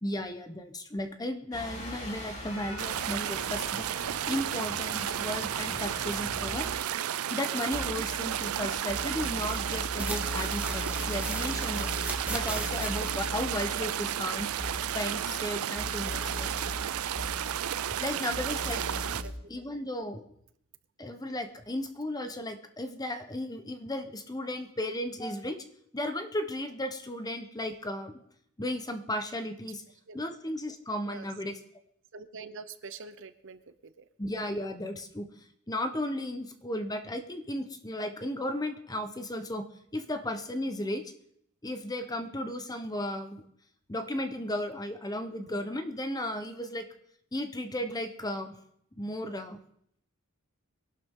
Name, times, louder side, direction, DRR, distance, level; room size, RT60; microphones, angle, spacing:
voice 1, 0.0-3.9 4.2-6.7 7.3-11.9 12.3-14.5 14.9-16.5 18.0-18.8 19.5-20.2 21.0-25.6 25.9-28.2 28.6-29.8 30.1-31.6 34.2-35.3 35.7-39.6 39.9-41.0 41.6-43.4 43.9-46.9 47.3-48.5 49.0-49.6, left 1 dB, 20° left, 8 dB, 1.0 m, -35 dB
sound 1, 1.5-6.8, left 1 dB, 35° left, 2.9 m, -41 dB
sound 2, 2.8-19.2, right 10 dB, 75° right, 0.4 m, -33 dB
sound 3, 7.7-8.6 8.9-15.5 15.7-18.0 18.3-19.3, equal, 5° right, 1.9 m, -37 dB
voice 2, 18.9-19.4 30.1-30.2 31.0-31.6 32.1-34.0, right 4 dB, 60° right, 12 dB, 0.8 m, -46 dB
22.0 x 12.0 x 3.8 m, 0.72 s
head